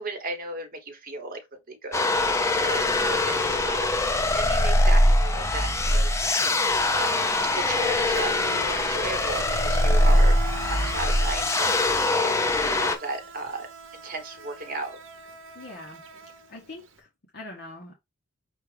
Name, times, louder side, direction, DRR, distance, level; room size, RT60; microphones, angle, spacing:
voice 1, 0.0-1.4 1.7-3.9 4.3-6.1 6.8-7.2 7.5-12.3 12.8-15.0, right 2 dB, 45° right, 1.2 m, -35 dB
sound 1, 1.9-13.0, left 1 dB, 15° left, 0.5 m, -22 dB
Insect, 5.4-5.6 5.9-16.9, right 3 dB, 70° right, 0.8 m, -40 dB
voice 2, 15.5-16.0 16.5-17.1 17.3-17.9, left 2 dB, 55° left, 1.0 m, -42 dB
6.3 x 2.4 x 3.3 m
head